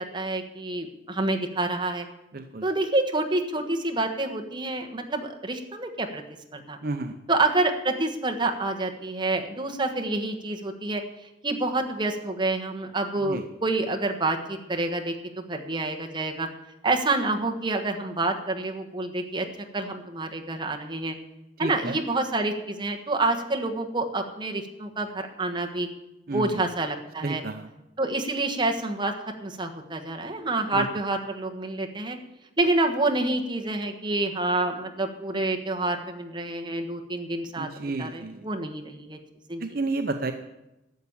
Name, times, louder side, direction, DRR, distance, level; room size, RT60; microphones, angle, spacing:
voice 1, 0.0-2.1 2.6-6.2 6.5-6.8 7.3-11.0 11.4-16.5 16.8-19.5 19.7-21.2 21.6-25.9 26.3-27.4 28.0-29.2 29.4-32.2 32.6-39.2 39.5-39.6, right 2 dB, 25° right, 3 dB, 1.3 m, -28 dB
voice 2, 2.3-2.7 6.8-7.2 13.2-13.4 21.6-22.0 26.3-26.7 27.2-27.7 30.7-30.9 37.6-38.4 39.6-40.3, right 2 dB, 55° right, 6 dB, 0.7 m, -31 dB
13.0 x 7.0 x 8.7 m, 0.93 s
head